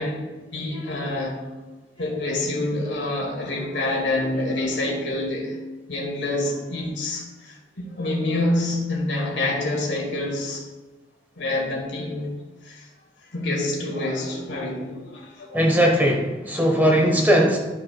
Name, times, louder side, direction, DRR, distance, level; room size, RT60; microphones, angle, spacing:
voice 1, 0.0-1.5 2.0-5.6 5.9-10.7 11.4-12.3 12.6-12.9 13.3-15.6, left 2 dB, 70° left, 0 dB, 1.9 m, -27 dB
voice 2, 15.5-17.6, equal, 10° right, 0 dB, 1.1 m, -19 dB
12.0 x 5.9 x 2.3 m, 1.2 s
head